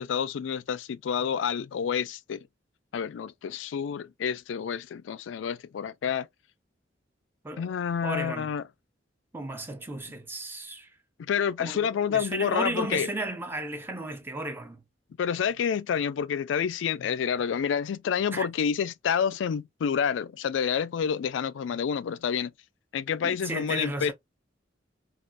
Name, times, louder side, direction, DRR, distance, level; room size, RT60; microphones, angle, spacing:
voice 1, 0.0-2.4 2.9-6.3 7.6-8.6 11.2-13.1 15.2-22.5 22.9-24.1, left 7 dB, 90° left, 0.3 m, -28 dB
voice 2, 8.0-8.5 9.3-10.9 11.6-14.8 18.3-18.5 23.2-24.1, right 2 dB, 10° right, 0.5 m, -34 dB
3.3 x 2.4 x 2.4 m
head